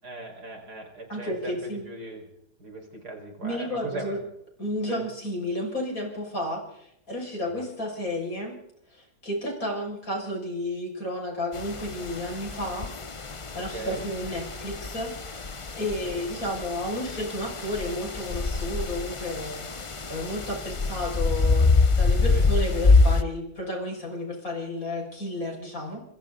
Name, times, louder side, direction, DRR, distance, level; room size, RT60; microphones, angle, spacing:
voice 1, 0.0-2.2 2.6-4.2 4.9-5.0 7.4-7.7 13.5-14.1 16.1-16.2 22.3-22.5, right 3 dB, 75° right, 2 dB, 6.0 m, -38 dB
voice 2, 1.1-1.8 3.4-4.2 4.6-8.6 8.9-12.9 13.3-15.5 15.7-26.0, left 1 dB, 60° left, 0 dB, 6.7 m, -32 dB
sound 1, 11.5-23.2, left 3 dB, 30° left, 0.7 m, -25 dB
28.0 x 25.5 x 4.0 m, 0.78 s
omnidirectional pair, 1.7 m